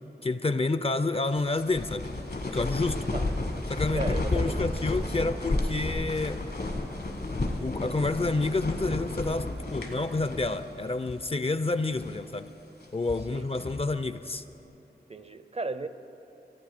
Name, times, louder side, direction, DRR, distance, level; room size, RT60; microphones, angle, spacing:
voice 1, 0.2-2.1 2.4-3.1 3.7-6.4 7.6-12.5 12.9-14.4, left 3 dB, 35° left, 12 dB, 0.4 m, -29 dB
sound 1, 1.3-10.8 11.1-11.2 11.8-12.3 12.8-13.9, left 2 dB, 65° left, 1.3 m, -32 dB
voice 2, 3.9-4.7 13.3-13.5 15.1-15.9, right 2 dB, 35° right, 12 dB, 0.5 m, -35 dB
15.0 x 8.7 x 4.9 m, 3.0 s
wide cardioid pair, 45°, 17 cm